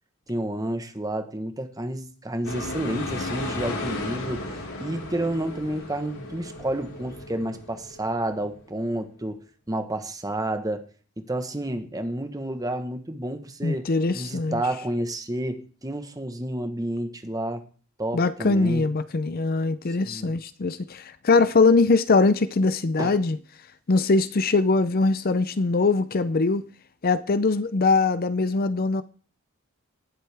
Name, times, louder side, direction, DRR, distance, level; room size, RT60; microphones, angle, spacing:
voice 1, 0.3-4.5 4.8-9.4 9.7-10.8 11.2-17.6 18.0-18.8 20.0-20.3 23.0-23.2, right 1 dB, 15° right, 1.2 m, -30 dB
sound 1, 2.4-8.7, left 2 dB, 80° left, 4.4 m, -35 dB
voice 2, 13.6-14.6 18.1-23.4 23.9-26.6 27.0-29.0, left 3 dB, 45° left, 0.5 m, -22 dB
19.0 x 7.8 x 3.5 m
head